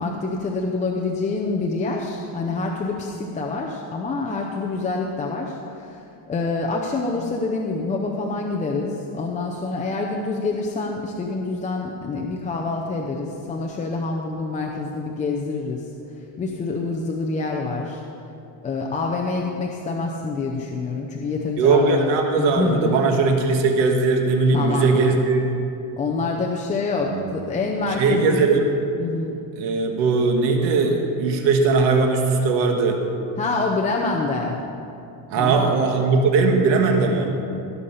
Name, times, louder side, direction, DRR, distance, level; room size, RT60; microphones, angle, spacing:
voice 1, 0.0-6.0 6.3-15.9 16.4-18.0 18.6-22.1 22.4-23.1 24.5-25.2 26.0-28.5 29.0-29.4 33.4-34.6 35.3-35.7, left 3 dB, 15° left, -1 dB, 0.6 m, -26 dB
voice 2, 21.6-25.4 27.0-27.3 27.6-28.7 29.6-33.0 35.3-37.4, right 4 dB, 70° right, 3 dB, 1.6 m, -19 dB
17.0 x 6.7 x 5.5 m, 2.7 s
cardioid pair, 155°, 45 cm